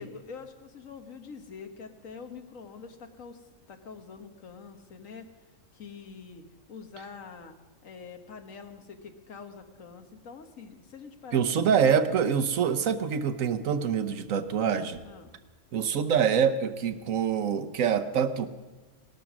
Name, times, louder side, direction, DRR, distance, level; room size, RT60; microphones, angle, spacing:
voice 1, 0.0-5.3 5.7-7.6 7.8-12.0 15.0-15.4, left 5 dB, 85° left, 6 dB, 1.6 m, -45 dB
voice 2, 11.3-15.0 15.7-18.5, right 7 dB, 85° right, 8 dB, 1.3 m, -25 dB
18.5 x 12.5 x 6.1 m, 1.2 s
omnidirectional pair, 1.3 m